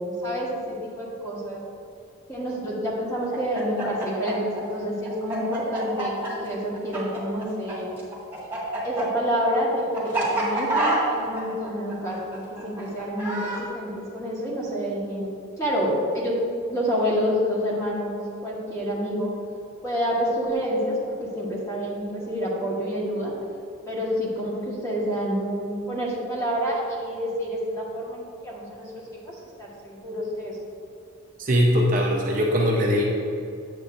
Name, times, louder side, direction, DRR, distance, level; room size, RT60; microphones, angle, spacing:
voice 1, 0.0-1.6 2.3-7.9 8.8-15.3 15.6-16.4 16.7-19.3 19.8-23.3 23.9-30.6, equal, 15° left, -5 dB, 1.4 m, -28 dB
Chicken rooster, 3.3-7.7 8.0-13.6, right 2 dB, 10° right, 1.7 m, -28 dB
voice 2, 31.4-33.0, equal, 35° right, -2 dB, 0.7 m, -21 dB
8.4 x 8.1 x 2.6 m, 2.5 s
head